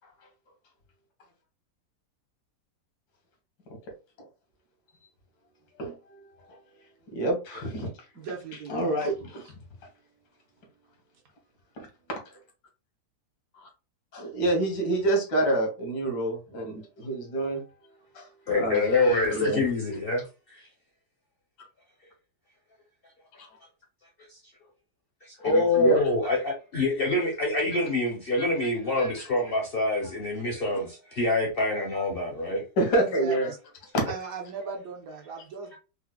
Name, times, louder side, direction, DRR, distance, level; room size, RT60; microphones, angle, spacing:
voice 1, 5.7-6.2 6.5-6.6 7.1-7.9 8.7-9.5 11.8-12.4 13.6-13.7 14.1-17.6 18.1-19.6 23.4-23.5 25.5-26.0 28.8-29.3 32.8-33.5 33.9-34.1, right 1 dB, 85° left, 1.7 m, -28 dB
voice 2, 8.1-9.3 33.0-33.6 34.0-35.8, right 4 dB, 60° right, 1.2 m, -37 dB
voice 3, 18.5-20.2 20.5-20.6 25.2-32.6, left 2 dB, 55° left, 0.6 m, -26 dB
4.7 x 2.1 x 2.2 m
omnidirectional pair, 1.8 m